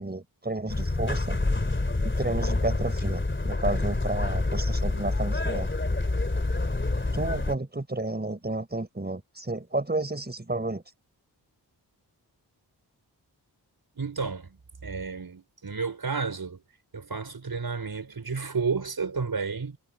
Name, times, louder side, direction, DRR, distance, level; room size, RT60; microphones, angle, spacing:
voice 1, 0.0-1.4 2.0-5.7 7.1-10.8, right 2 dB, 25° right, 5.6 m, -31 dB
sound 1, 0.7-7.6, left 2 dB, 25° left, 3.0 m, -27 dB
voice 2, 14.0-16.6 16.9-19.8, right 5 dB, 60° right, 5.0 m, -31 dB
wide cardioid pair, 65°, 42 cm